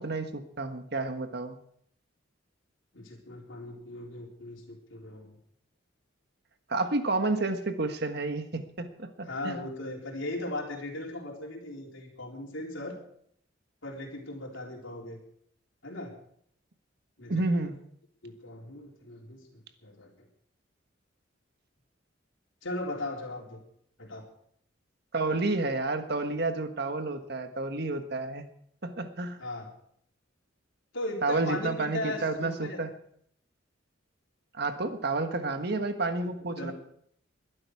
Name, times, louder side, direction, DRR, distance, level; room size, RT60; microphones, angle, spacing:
voice 1, 0.0-1.6 6.7-9.7 17.3-17.8 25.1-28.4 28.8-29.4 31.2-32.9 34.5-36.7, right 2 dB, 55° right, 8 dB, 1.5 m, -30 dB
voice 2, 2.9-5.4 9.2-13.0 13.8-15.2 15.8-16.1 17.2-17.4 18.2-20.1 22.6-23.6 24.0-24.3 29.4-29.7 30.9-32.8 36.6-36.7, left 1 dB, 70° left, 1 dB, 4.0 m, -38 dB
22.0 x 11.5 x 4.8 m, 0.67 s
head